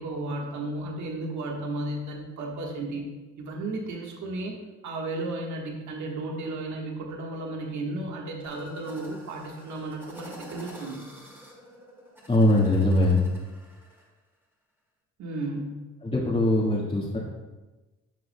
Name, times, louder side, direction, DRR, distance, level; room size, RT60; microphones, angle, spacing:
voice 1, 0.0-3.1 3.4-4.6 4.8-11.0 15.2-15.9, right 2 dB, 70° right, 0 dB, 1.5 m, -34 dB
sound 1, 8.5-14.1, equal, 5° right, 2.2 m, -48 dB
voice 2, 12.3-13.2 16.0-17.2, left 1 dB, 20° left, -5 dB, 1.6 m, -21 dB
12.0 x 6.2 x 2.2 m, 1.2 s
cardioid pair, 90°, 30 cm